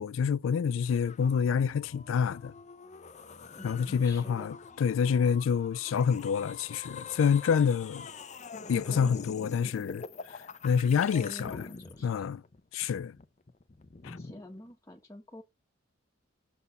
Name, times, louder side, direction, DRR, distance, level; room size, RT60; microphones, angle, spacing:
voice 1, 0.0-2.5 3.6-8.1 8.7-10.0 10.6-11.6 12.0-12.4 12.7-13.1 14.0-14.2, left 6 dB, 75° left, 0.3 m, -27 dB
sound 1, 0.9-14.7, left 4 dB, 35° left, 0.6 m, -45 dB
voice 2, 3.6-4.6 10.9-12.3 14.2-15.4, left 1 dB, 15° left, 1.2 m, -47 dB
6.9 x 4.1 x 5.5 m
head